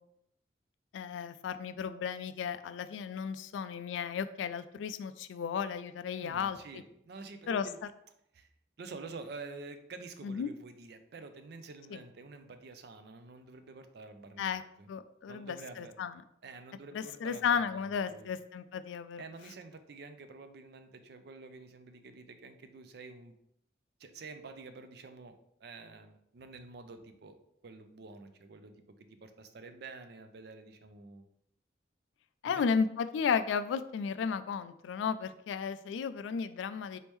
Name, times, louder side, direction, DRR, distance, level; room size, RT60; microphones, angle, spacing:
voice 1, 0.9-6.6 7.5-7.7 10.2-10.5 11.9-12.0 14.4-14.6 14.9-16.1 16.9-19.2 32.4-37.0, left 6 dB, 80° left, 12 dB, 0.3 m, -34 dB
voice 2, 6.2-7.8 8.3-8.5 8.8-14.9 15.3-16.0 16.4-18.3 19.2-23.3 24.0-27.4 27.6-31.3 32.5-32.6, right 3 dB, 60° right, 8 dB, 0.4 m, -48 dB
4.1 x 3.5 x 3.1 m, 0.75 s
head